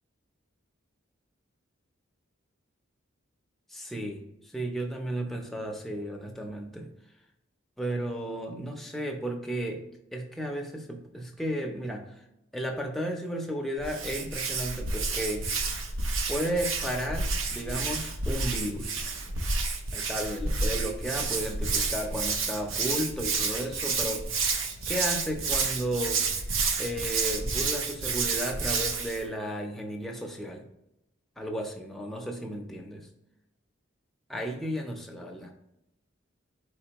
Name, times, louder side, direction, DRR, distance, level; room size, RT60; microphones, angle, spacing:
voice 1, 3.7-6.9 7.8-9.8 10.1-12.1 12.5-15.5 16.3-19.0 19.9-24.4 24.9-26.3 26.8-30.6 31.4-33.1 34.3-35.5, right 1 dB, ahead, 1 dB, 0.4 m, -34 dB
Hands, 13.8-29.2, right 4 dB, 75° right, 0.6 m, -30 dB
4.3 x 4.0 x 2.9 m, 0.86 s
head